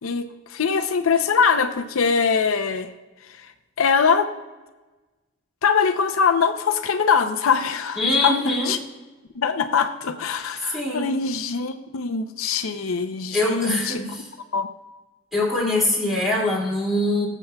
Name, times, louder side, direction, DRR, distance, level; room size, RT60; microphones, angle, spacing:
voice 1, 0.0-2.9 3.4-3.5 3.8-4.3 5.6-8.3 8.7-8.8 9.3-14.0 14.5-14.7, left 6 dB, 90° left, 8 dB, 0.6 m, -22 dB
voice 2, 8.0-8.7 10.7-11.1 13.3-14.3 15.3-17.3, left 2 dB, ahead, -5 dB, 2.4 m, -23 dB
19.0 x 7.2 x 2.3 m, 1.2 s
head